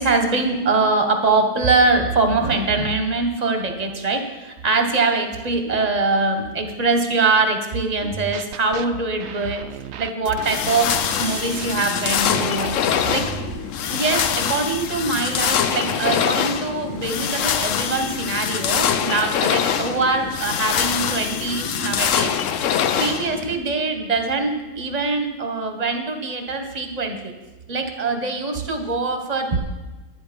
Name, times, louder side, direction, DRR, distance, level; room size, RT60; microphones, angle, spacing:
voice 1, 0.0-9.6 10.0-12.7 13.1-13.3 13.9-27.3 27.7-29.6, right 3 dB, 35° right, 5 dB, 1.2 m, -23 dB
sound 1, 8.0-8.8 9.2-13.6, right 9 dB, 65° right, 0.8 m, -35 dB
sound 2, 10.4-23.6, left 8 dB, 80° left, 1.0 m, -24 dB
10.5 x 10.5 x 5.2 m, 1.2 s
omnidirectional pair, 1.3 m